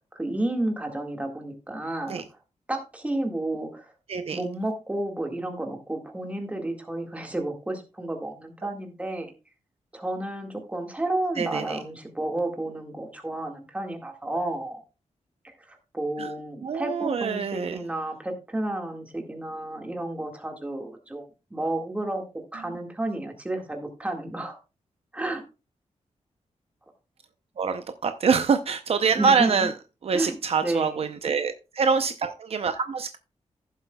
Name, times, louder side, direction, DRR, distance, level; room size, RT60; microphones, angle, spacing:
voice 1, 0.1-2.2 2.7-3.9 4.3-9.3 9.9-14.8 15.4-22.2 22.5-24.6 25.1-25.4 29.1-29.7 30.1-30.4 30.6-31.1, right 1 dB, 10° right, 3 dB, 1.8 m, -31 dB
voice 2, 11.4-11.8 16.2-16.3 16.6-17.8 27.6-29.7 30.0-33.2, right 5 dB, 55° right, 9 dB, 0.6 m, -25 dB
15.0 x 7.5 x 2.3 m, 0.29 s
wide cardioid pair, 165°, 12 cm